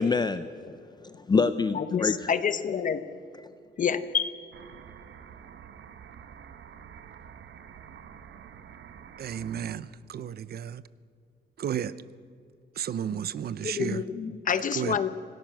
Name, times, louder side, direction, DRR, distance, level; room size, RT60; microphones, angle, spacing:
voice 1, 0.0-2.4 3.4-3.5, left 4 dB, 20° left, 12 dB, 0.4 m, -27 dB
voice 2, 1.7-3.0 3.8-4.3 13.6-15.1, left 7 dB, 45° left, 12 dB, 1.0 m, -28 dB
sound 1, 4.5-9.8, right 8 dB, 75° right, 1.1 m, -48 dB
voice 3, 9.2-10.8 11.6-12.0 12.8-14.0 14.7-15.0, right 9 dB, 55° right, 17 dB, 0.6 m, -33 dB
26.0 x 18.5 x 6.0 m, 2.4 s
wide cardioid pair, 175°, 19 cm